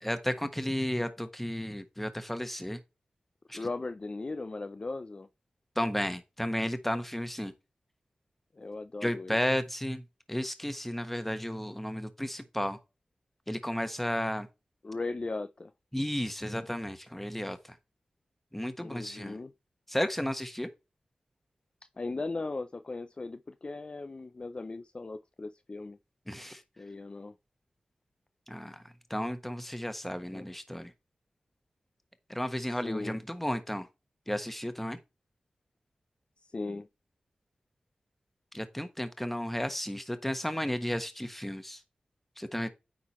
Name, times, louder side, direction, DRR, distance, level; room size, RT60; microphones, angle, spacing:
voice 1, 0.0-2.8 3.5-3.7 5.7-7.5 9.0-12.8 13.5-14.5 15.9-17.8 18.5-19.4 19.9-20.7 26.3-26.6 28.5-28.8 29.1-30.9 32.3-33.9 34.3-35.0 38.5-41.8 42.4-42.7, equal, 5° left, 1.3 m, -33 dB
voice 2, 3.5-5.3 8.5-9.4 14.8-15.7 18.8-19.5 22.0-26.0 26.8-27.4 30.3-30.5 32.8-33.2 36.5-36.9, left 3 dB, 40° left, 0.5 m, -38 dB
9.5 x 3.8 x 4.2 m
cardioid pair, 55°, 3 cm